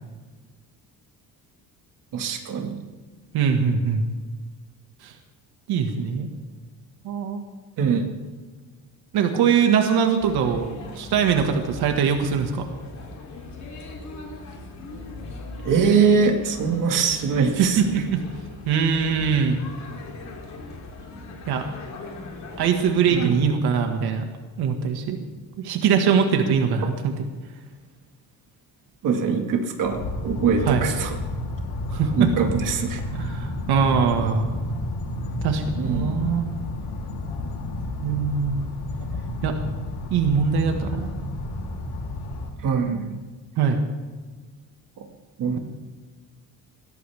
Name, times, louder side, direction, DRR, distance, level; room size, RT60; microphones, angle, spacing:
voice 1, 2.1-2.8 7.8-8.1 15.6-18.0 23.1-23.3 29.0-31.1 32.2-33.0 35.8-36.4 42.6-43.2 45.0-45.1 45.4-45.6, right 6 dB, 55° right, 3 dB, 2.0 m, -23 dB
voice 2, 3.3-4.0 5.0-5.1 5.7-6.3 7.0-7.4 9.1-10.7 10.9-12.7 17.6-18.2 18.6-19.6 21.5-21.7 22.6-24.2 24.6-25.2 25.6-27.1 30.7-30.8 31.9-32.3 33.1-34.5 35.4-36.4 38.0-38.6 39.4-39.5 40.1-41.1 43.6-43.8, right 6 dB, 85° right, 4 dB, 1.8 m, -22 dB
sound 1, 10.2-23.3, left 2 dB, 45° left, 3.3 m, -40 dB
sound 2, 29.8-42.5, left 2 dB, 75° left, 3.4 m, -31 dB
21.5 x 17.5 x 3.5 m, 1.4 s
cardioid pair, 175°, 38 cm